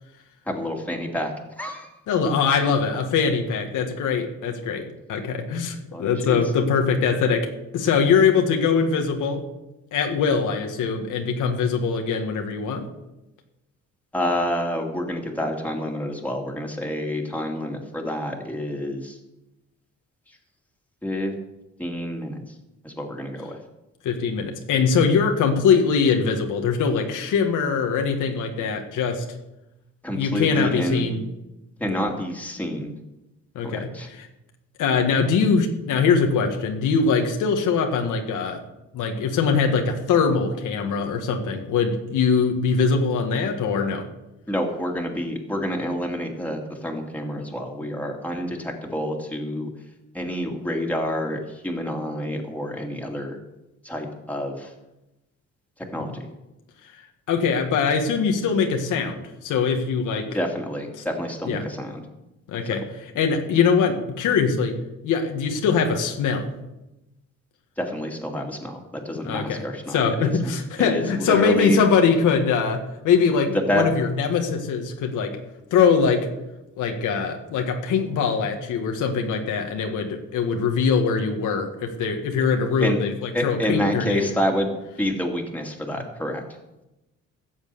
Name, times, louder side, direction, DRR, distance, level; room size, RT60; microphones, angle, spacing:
voice 1, 0.5-2.0 5.9-6.5 14.1-19.2 20.3-20.4 21.0-21.3 21.8-22.4 22.8-23.6 30.0-31.0 31.8-33.0 33.6-34.1 44.5-49.7 50.1-53.4 53.8-54.7 55.8-56.3 60.3-62.0 67.8-71.8 73.5-73.9 82.4-82.5 82.8-83.0 83.3-86.4, equal, 5° left, 1 dB, 2.7 m, -28 dB
voice 2, 2.1-4.8 5.1-7.5 7.7-9.4 9.9-12.9 24.0-29.2 30.1-31.2 33.6-34.3 34.8-38.6 38.9-44.0 57.3-60.3 61.5-61.6 62.5-62.8 63.2-64.8 65.0-66.5 69.3-69.6 69.9-75.4 75.7-76.3 76.8-83.1 83.4-84.3, left 5 dB, 80° left, 4 dB, 1.8 m, -22 dB
14.5 x 7.4 x 7.0 m, 0.96 s
cardioid pair, 90°, 30 cm